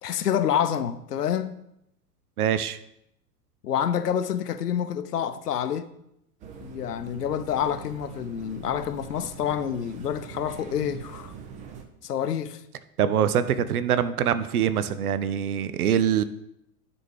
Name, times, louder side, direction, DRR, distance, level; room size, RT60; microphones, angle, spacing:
voice 1, 0.0-1.6 3.6-5.9 6.6-11.3 12.0-12.6, left 9 dB, 70° left, 0.7 m, -28 dB
voice 2, 2.4-2.8 13.0-16.2, right 9 dB, 65° right, 0.6 m, -24 dB
sound 1, 6.4-11.8, right 7 dB, 15° right, 0.5 m, -43 dB
9.7 x 4.3 x 4.8 m
figure-of-eight pair, 90°, 48 cm